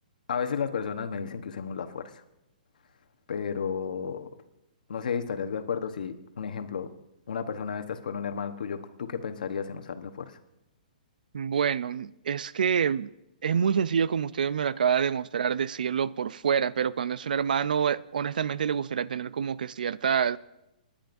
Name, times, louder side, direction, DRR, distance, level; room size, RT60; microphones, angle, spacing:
voice 1, 0.3-2.1 3.3-4.3 4.9-6.9 7.3-10.4, left 6 dB, 65° left, 1.1 m, -33 dB
voice 2, 11.3-13.1 13.4-20.4, right 7 dB, 70° right, 0.4 m, -27 dB
28.0 x 10.0 x 2.6 m
hypercardioid pair, 180°, 5 cm